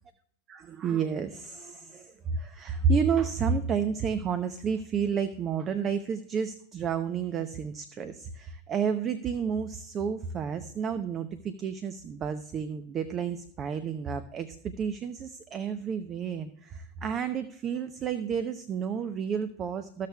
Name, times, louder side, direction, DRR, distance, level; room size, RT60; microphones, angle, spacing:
voice 1, 0.5-20.1, right 6 dB, 35° right, 11 dB, 0.7 m, -31 dB
15.0 x 6.6 x 2.3 m, 0.66 s
hypercardioid pair, 100°, 0 cm